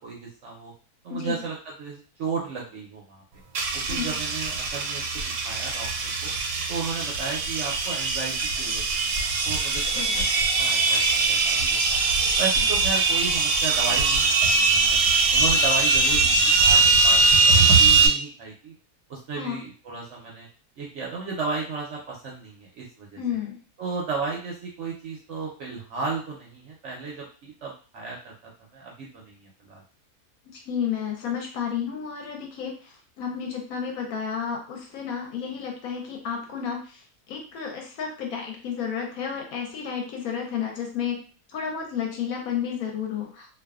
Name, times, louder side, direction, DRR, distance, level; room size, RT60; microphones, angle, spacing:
voice 1, 0.0-0.7 1.0-3.2 3.7-5.9 6.2-6.3 6.7-10.3 10.6-12.0 12.4-18.7 19.1-20.5 20.8-23.2 23.8-28.3 28.7-29.8, right 4 dB, 65° right, -3 dB, 0.8 m, -34 dB
voice 2, 1.1-1.4 3.9-4.1 9.9-10.2 19.4-19.6 23.2-23.6 30.5-37.0 37.3-41.2 41.5-43.5, left 7 dB, 70° left, 2 dB, 1.0 m, -31 dB
sound 1, 3.5-18.1, right 4 dB, 85° right, 1.1 m, -21 dB
2.5 x 2.3 x 2.3 m, 0.39 s
omnidirectional pair, 1.7 m